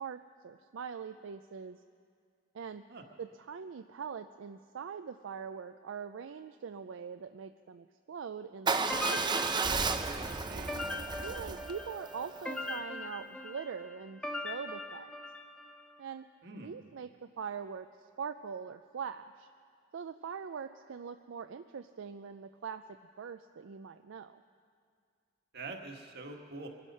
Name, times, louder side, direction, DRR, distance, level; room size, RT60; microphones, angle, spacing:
voice 1, 0.0-1.8 2.5-2.8 3.2-9.2 11.2-15.1 16.0-16.3 16.6-19.5 19.9-22.8 23.2-24.4, right 6 dB, 75° right, 9 dB, 0.4 m, -42 dB
Motorcycle / Engine starting / Idling, 8.7-12.8, right 4 dB, 25° right, 0.6 m, -33 dB
sound 1, 8.9-15.8, left 2 dB, 5° left, 0.9 m, -41 dB
voice 2, 10.1-10.7 16.4-16.7 25.5-26.7, right 3 dB, 60° right, 3 dB, 1.5 m, -45 dB
23.5 x 11.0 x 5.5 m, 2.2 s
head